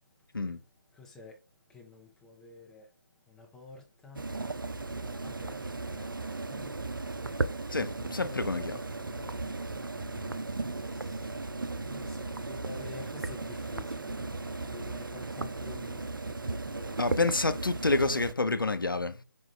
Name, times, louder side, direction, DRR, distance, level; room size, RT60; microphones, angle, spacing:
voice 1, 0.9-1.4 1.7-2.9 3.3-4.3 4.8-6.8 8.0-8.9 9.9-11.4 11.8-17.4, left 3 dB, 5° left, 0.6 m, -50 dB
sound 1, 4.1-18.3, right 3 dB, 80° right, 0.5 m, -36 dB
voice 2, 7.7-8.8 17.0-19.2, left 3 dB, 85° left, 0.6 m, -28 dB
5.3 x 2.4 x 3.2 m
figure-of-eight pair, 150°, 11 cm